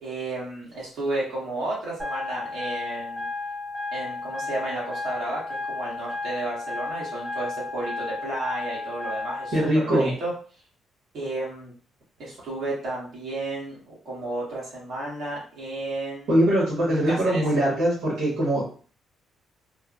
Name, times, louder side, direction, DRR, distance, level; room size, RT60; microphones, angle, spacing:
voice 1, 0.0-3.3 3.9-10.3 11.1-11.7 12.2-16.4 16.9-17.4, right 2 dB, 55° right, -6 dB, 1.3 m, -32 dB
sound 1, 2.0-9.6, left 3 dB, 10° right, 0.5 m, -33 dB
voice 2, 9.5-10.1 16.3-18.6, right 1 dB, 75° right, -6 dB, 1.2 m, -22 dB
3.2 x 2.1 x 2.4 m, 0.41 s
cardioid pair, 155°, 0 cm